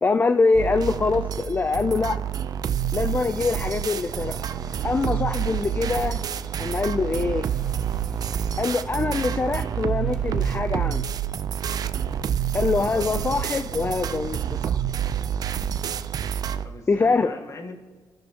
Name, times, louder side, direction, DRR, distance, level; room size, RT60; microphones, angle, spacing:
voice 1, 0.0-2.2 2.9-4.4 4.8-6.2 6.6-7.5 8.6-11.0 12.5-14.7 16.9-17.3, left 4 dB, 25° left, 9 dB, 0.5 m, -24 dB
sound 1, 0.5-16.7, right 9 dB, 55° right, 0.6 m, -28 dB
sound 2, 3.9-10.5, right 1 dB, 10° right, 1.9 m, -47 dB
voice 2, 12.8-13.2 16.6-17.7, left 3 dB, 40° left, 4 dB, 1.9 m, -39 dB
26.5 x 13.0 x 3.0 m, 1.5 s
cardioid pair, 110°, 8 cm